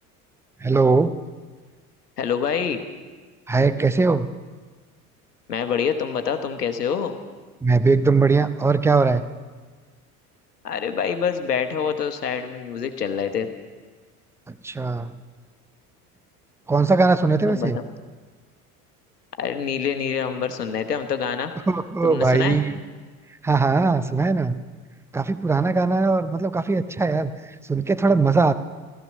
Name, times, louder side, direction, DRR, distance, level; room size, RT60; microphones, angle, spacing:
voice 1, 0.6-1.1 3.5-4.3 7.6-9.2 14.6-15.1 16.7-17.8 21.7-22.8 23.4-24.6 25.1-27.3 27.7-28.5, right 4 dB, 5° right, 13 dB, 0.4 m, -20 dB
voice 2, 2.2-2.8 5.5-7.2 10.6-13.5 17.5-17.8 19.4-21.5 22.0-22.6, left 7 dB, 80° left, 7 dB, 1.2 m, -26 dB
16.0 x 13.5 x 6.4 m, 1.4 s
figure-of-eight pair, 70°, 46 cm